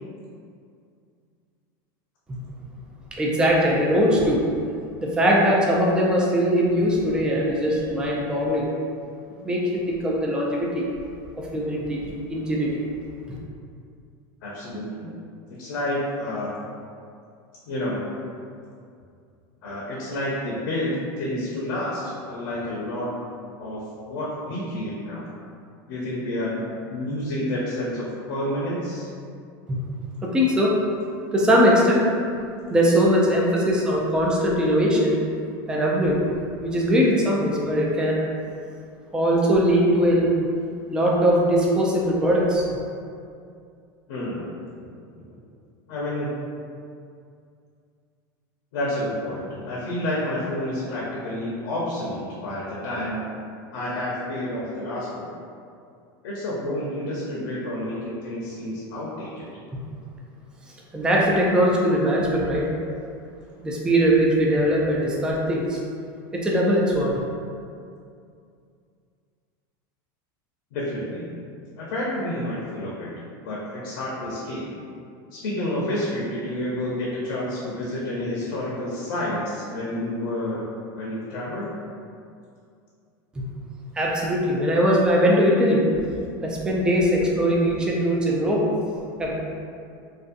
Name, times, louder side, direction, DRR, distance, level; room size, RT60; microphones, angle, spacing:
voice 1, 3.1-4.4 5.0-8.7 9.4-10.8 11.4-12.8 13.3-13.4 30.2-30.8 31.3-32.0 32.7-35.1 35.7-36.2 36.6-38.2 39.1-40.3 40.9-42.7 60.9-62.7 63.6-65.8 66.3-67.1 83.4-83.5 84.0-85.8 86.4-88.7 89.2-89.3, equal, 5° right, -3 dB, 0.3 m, -21 dB
voice 2, 14.4-15.2 15.6-16.5 17.7-18.0 19.6-23.1 23.6-23.8 24.1-25.2 25.9-29.1 44.1-44.5 45.9-46.4 48.7-53.3 53.7-55.3 56.2-59.4 70.7-71.3 71.8-73.1 73.4-74.7 75.3-80.7 80.9-81.7, left 1 dB, 80° left, -6 dB, 0.6 m, -29 dB
2.5 x 2.3 x 2.4 m, 2.4 s
supercardioid pair, 140°, 12 cm